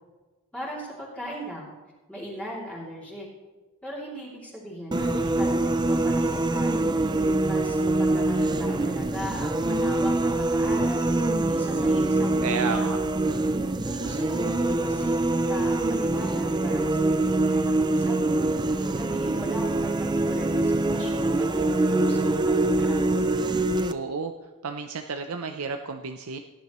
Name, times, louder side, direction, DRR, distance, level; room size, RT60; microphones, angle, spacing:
voice 1, 0.5-1.7 2.1-3.3 3.8-6.7 7.4-11.0 11.5-13.0 13.8-18.5 18.9-23.1, equal, 5° left, -7 dB, 2.7 m, -38 dB
sound 1, 4.9-23.9, right 2 dB, 20° right, 0.4 m, -24 dB
voice 2, 12.4-13.0 23.9-24.3 24.6-26.4, right 5 dB, 75° right, 6 dB, 0.6 m, -31 dB
17.5 x 10.5 x 3.1 m, 1.2 s
head